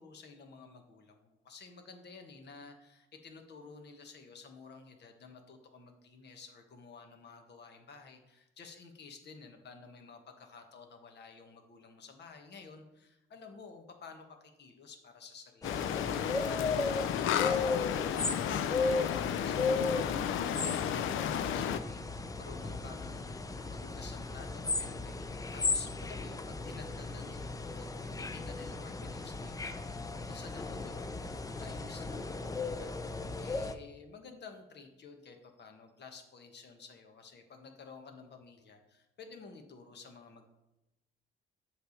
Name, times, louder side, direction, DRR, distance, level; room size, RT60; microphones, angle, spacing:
voice 1, 0.0-40.5, left 4 dB, 60° left, 5 dB, 1.3 m, -52 dB
sound 1, 15.6-21.8, left 10 dB, 80° left, 0.5 m, -33 dB
sound 2, 15.6-33.7, left 3 dB, 15° left, 0.5 m, -36 dB
8.0 x 3.4 x 6.4 m, 0.95 s
cardioid pair, 90°, 20 cm